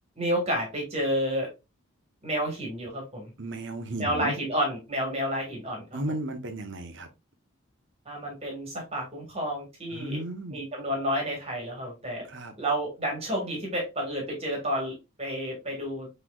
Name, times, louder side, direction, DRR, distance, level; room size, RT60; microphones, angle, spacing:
voice 1, 0.2-1.5 2.2-3.3 4.0-5.8 8.0-10.2 10.5-12.3 12.6-16.2, equal, 30° right, 1.7 m, -30 dB
voice 2, 3.4-4.3 5.9-7.1 9.9-10.6 12.3-12.5, right 1 dB, 55° right, 0.8 m, -34 dB
6.0 x 3.2 x 2.3 m
head